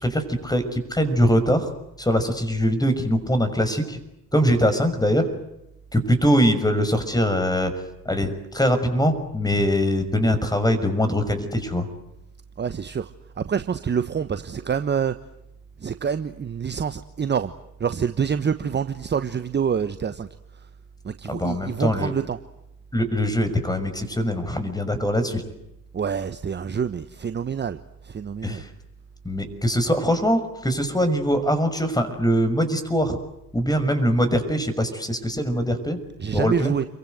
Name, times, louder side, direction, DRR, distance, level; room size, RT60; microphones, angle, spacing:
voice 1, 0.0-1.7 2.0-4.0 4.3-5.3 5.9-11.9 21.3-22.1 22.9-25.4 28.4-28.7 29.2-33.2 33.5-36.0 36.3-36.7, equal, 10° left, 9 dB, 6.1 m, -22 dB
voice 2, 12.6-13.1 13.4-15.1 15.8-17.5 17.8-20.3 21.0-22.4 25.9-27.8 28.0-28.6 36.2-36.9, right 7 dB, 20° right, 11 dB, 1.2 m, -26 dB
29.5 x 23.5 x 8.0 m, 0.86 s
hypercardioid pair, 70°, 46 cm